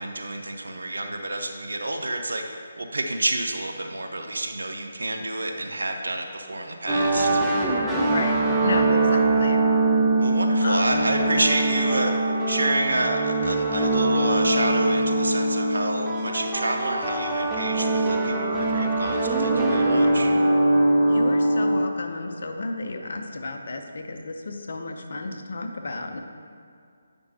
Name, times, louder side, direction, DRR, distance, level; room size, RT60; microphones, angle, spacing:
voice 1, 0.0-2.5 2.8-7.4 10.2-12.1 12.5-20.3, right 2 dB, 65° right, 3 dB, 0.6 m, -28 dB
sound 1, 6.9-21.8, right 2 dB, 5° right, 0.6 m, -22 dB
voice 2, 8.1-9.6 10.6-11.0 21.1-26.2, left 2 dB, 50° left, 4 dB, 0.6 m, -32 dB
9.4 x 5.2 x 2.8 m, 2.3 s
figure-of-eight pair, 145°, 0 cm